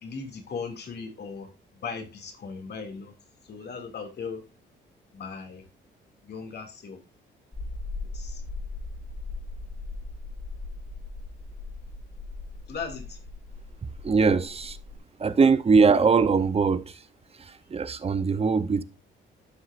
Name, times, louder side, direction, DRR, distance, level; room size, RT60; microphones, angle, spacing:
voice 1, 0.0-3.1 3.4-4.4 5.1-5.6 6.2-7.0 8.0-8.4 12.7-13.2, left 5 dB, 55° left, 2.4 m, -38 dB
sound 1, 7.5-15.0, left 3 dB, 15° left, 2.6 m, -39 dB
voice 2, 14.0-14.8 15.2-16.8 17.7-18.8, right 5 dB, 30° right, 0.7 m, -21 dB
11.5 x 6.3 x 2.5 m
cardioid pair, 90°, 20 cm